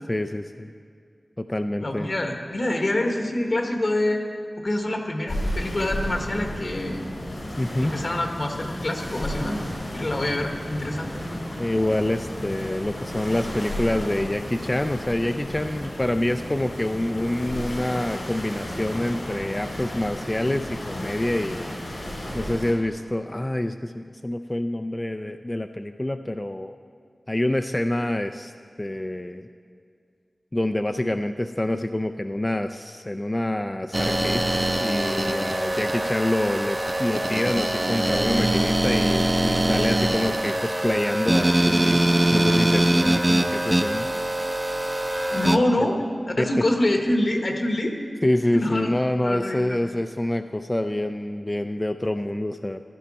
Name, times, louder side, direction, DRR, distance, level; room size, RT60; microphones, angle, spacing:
voice 1, 0.1-0.7 1.4-2.1 7.6-7.9 11.6-21.8 22.3-26.8 27.3-28.5 28.8-29.5 30.5-42.0 42.3-44.1 45.8-45.9 46.4-46.5 48.2-52.8, left 1 dB, 25° left, 7 dB, 0.3 m, -26 dB
voice 2, 1.8-4.2 4.6-7.0 7.8-9.6 9.9-11.1 45.3-46.0 46.3-48.0 48.5-48.9 49.2-49.8, left 1 dB, 55° left, 3 dB, 1.3 m, -25 dB
sound 1, 5.3-22.7, equal, 75° left, 4.0 m, -33 dB
sound 2, 33.9-45.6, right 1 dB, 25° right, 0.6 m, -23 dB
14.5 x 11.5 x 4.1 m, 2.1 s
wide cardioid pair, 65°, 0 cm